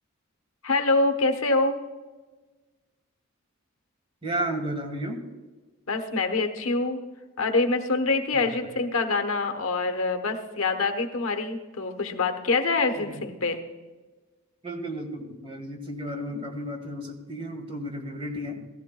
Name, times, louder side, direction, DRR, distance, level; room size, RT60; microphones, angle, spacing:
voice 1, 0.6-1.8 5.9-7.0 7.4-13.6, left 3 dB, 75° left, 6 dB, 1.1 m, -25 dB
voice 2, 4.2-5.3 8.3-8.8 13.0-13.3 14.6-18.7, right 1 dB, 25° right, 3 dB, 1.6 m, -33 dB
17.0 x 14.0 x 2.3 m, 1.3 s
head